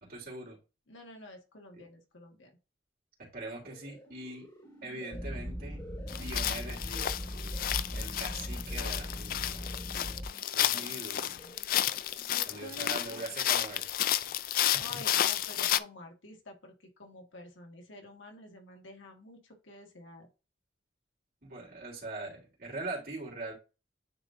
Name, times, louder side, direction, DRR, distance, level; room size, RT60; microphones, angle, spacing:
voice 1, 0.1-0.6 1.7-1.8 3.3-4.5 4.8-7.4 7.9-9.6 10.5-11.3 12.5-13.9 14.7-14.8 21.4-23.5, right 2 dB, 50° right, -2 dB, 3.3 m, -42 dB
voice 2, 0.9-2.6 10.7-10.8 11.3-11.7 12.3-13.3 14.8-20.3, left 2 dB, 85° left, 2 dB, 1.8 m, -49 dB
sound 1, 3.5-14.0, equal, 20° left, 2.5 m, -54 dB
sound 2, 5.1-10.3, equal, ahead, 1.0 m, -39 dB
sound 3, 6.1-15.8, left 12 dB, 50° left, 0.3 m, -31 dB
9.6 x 3.9 x 2.6 m, 0.29 s
head